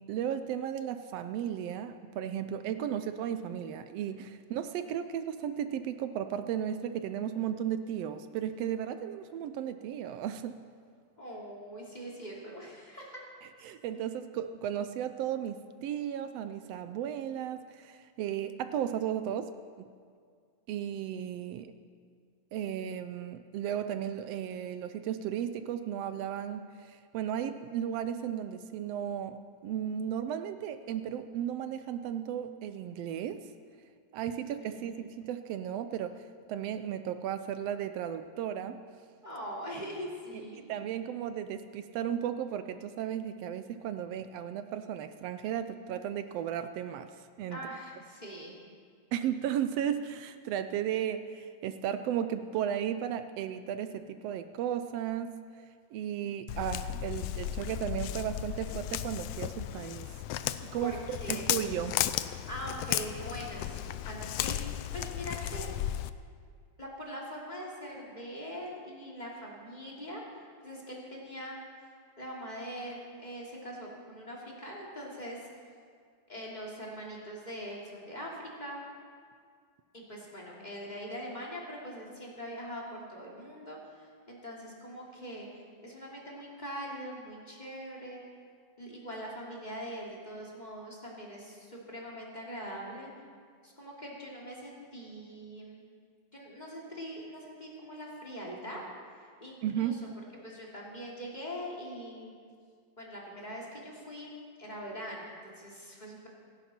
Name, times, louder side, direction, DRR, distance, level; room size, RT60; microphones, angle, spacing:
voice 1, 0.1-10.6 13.6-19.5 19.8-19.9 20.7-21.7 22.5-33.5 34.1-38.8 40.7-47.1 47.4-47.6 49.1-55.4 55.9-60.1 60.6-62.0 99.6-100.0, right 9 dB, 75° right, 10 dB, 1.5 m, -35 dB
voice 2, 11.2-13.2 34.7-35.1 39.2-40.6 47.5-48.6 60.8-61.5 62.5-65.7 66.8-71.6 72.2-75.5 76.3-78.8 79.9-88.2 88.8-93.1 93.6-95.9 96.3-98.8 99.4-100.0 100.4-102.3 103.0-104.3 104.6-106.3, equal, 15° left, -3 dB, 2.7 m, -42 dB
Walk footsteps, 56.5-66.1, left 13 dB, 85° left, 1.3 m, -35 dB
26.5 x 11.5 x 4.4 m, 2.1 s
omnidirectional pair, 3.3 m